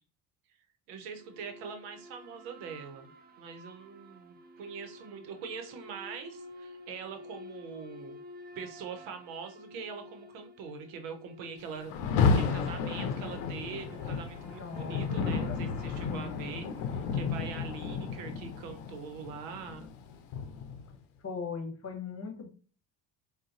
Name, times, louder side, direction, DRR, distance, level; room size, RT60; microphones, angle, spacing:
voice 1, 0.9-3.1 3.4-8.2 8.5-19.9, right 6 dB, 85° right, 6 dB, 0.8 m, -43 dB
sound 1, 1.1-17.7, left 1 dB, 20° right, 0.6 m, -52 dB
Rain, 11.9-21.0, left 5 dB, 80° left, 0.7 m, -32 dB
voice 2, 14.4-15.1 15.5-15.6 16.0-16.7 21.2-22.5, left 5 dB, 30° left, 4 dB, 1.1 m, -40 dB
3.9 x 2.3 x 2.4 m, 0.39 s
supercardioid pair, 70°, 49 cm